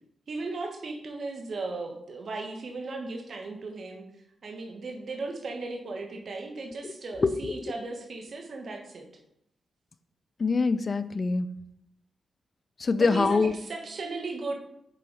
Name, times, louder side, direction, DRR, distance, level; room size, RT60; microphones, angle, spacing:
voice 1, 0.3-4.0 4.4-9.0 12.9-14.6, right 3 dB, 60° right, 3 dB, 1.3 m, -36 dB
voice 2, 7.2-7.5 10.4-11.5 12.8-13.5, left 4 dB, 45° left, 13 dB, 0.4 m, -24 dB
6.9 x 3.9 x 4.8 m, 0.78 s
cardioid pair, 75°, 0 cm